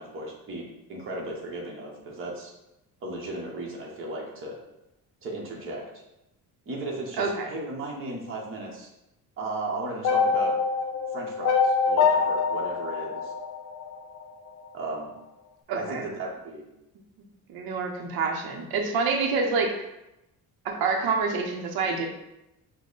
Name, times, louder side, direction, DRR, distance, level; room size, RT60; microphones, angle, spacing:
voice 1, 0.0-2.5 3.0-4.5 5.2-5.8 6.7-8.9 9.4-10.5 11.1-13.3 14.7-15.1 15.7-16.7 19.3-19.6, right 2 dB, 35° right, -2 dB, 0.9 m, -35 dB
voice 2, 7.2-7.5 15.7-16.0 17.5-19.7 20.6-22.1, right 4 dB, 85° right, 2 dB, 0.7 m, -27 dB
sound 1, 10.0-14.2, left 5 dB, 50° left, 0.5 m, -24 dB
5.2 x 2.1 x 3.9 m, 0.90 s
cardioid pair, 180°, 36 cm